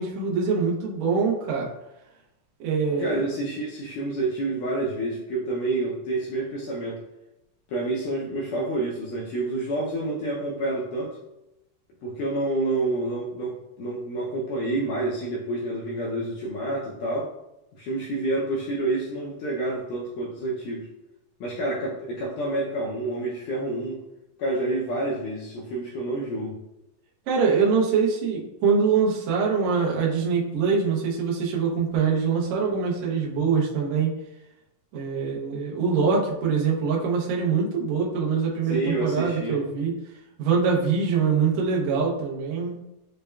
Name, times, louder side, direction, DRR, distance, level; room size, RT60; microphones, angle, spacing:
voice 1, 0.0-1.7 2.6-3.2 27.3-34.1 34.9-39.9 40.4-42.8, right 5 dB, 85° right, -3 dB, 1.5 m, -24 dB
voice 2, 3.0-7.0 7.7-11.2 12.0-17.3 17.8-20.9 21.4-24.0 24.4-26.6 38.6-39.6, right 2 dB, 80° left, -4 dB, 1.9 m, -28 dB
6.4 x 2.2 x 2.2 m, 0.90 s
omnidirectional pair, 4.2 m